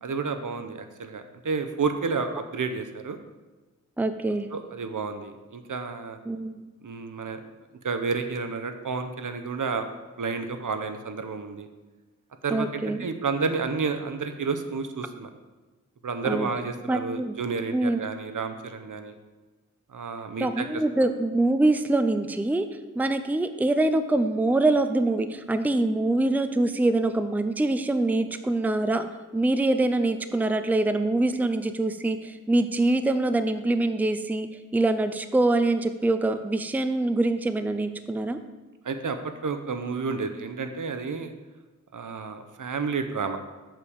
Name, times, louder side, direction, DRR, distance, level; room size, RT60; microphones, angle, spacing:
voice 1, 0.0-3.2 4.5-6.2 6.8-7.4 7.8-9.9 10.2-11.7 12.4-15.3 16.0-19.2 19.9-20.7 38.8-41.3 41.9-43.4, right 4 dB, 75° right, 8 dB, 0.8 m, -30 dB
voice 2, 4.0-4.5 6.3-6.7 12.5-13.0 16.2-16.5 16.8-17.3 17.7-18.0 20.4-22.7 23.0-29.1 29.3-34.5 34.7-38.4, right 2 dB, 5° right, 9 dB, 0.5 m, -24 dB
7.4 x 5.0 x 7.0 m, 1.2 s
wide cardioid pair, 80°, 32 cm